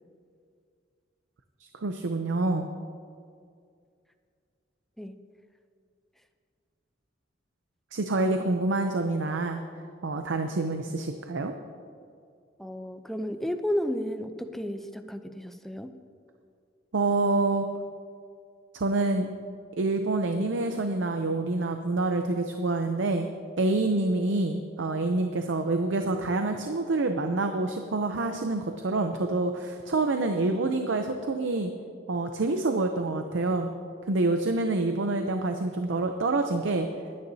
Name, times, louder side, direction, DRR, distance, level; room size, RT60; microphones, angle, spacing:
voice 1, 1.7-2.7 7.9-9.6 10.0-11.5 16.9-17.7 18.7-19.3 19.8-23.3 23.6-31.7 32.1-33.7 34.1-36.9, right 2 dB, 85° right, 6 dB, 0.6 m, -27 dB
voice 2, 12.6-15.9, equal, ahead, 8 dB, 0.5 m, -32 dB
20.5 x 9.7 x 2.8 m, 2.3 s
head